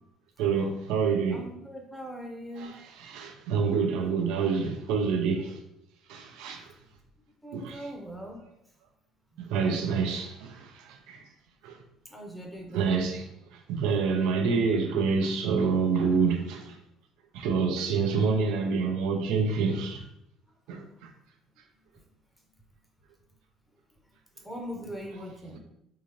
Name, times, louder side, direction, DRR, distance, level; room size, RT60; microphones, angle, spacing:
voice 1, 0.4-1.5 2.6-5.6 6.1-6.7 7.5-7.9 8.4-8.5 9.4-11.2 11.6-11.8 12.7-13.3 13.7-16.8 17.3-20.0 20.7-21.1 25.5-25.6, right 5 dB, 85° right, 0.5 m, -27 dB
voice 2, 1.3-2.7 7.4-8.4 9.3-9.4 12.1-13.1 24.4-25.6, right 1 dB, 5° left, 0.9 m, -40 dB
3.6 x 2.7 x 3.1 m
cardioid pair, 105°, 0 cm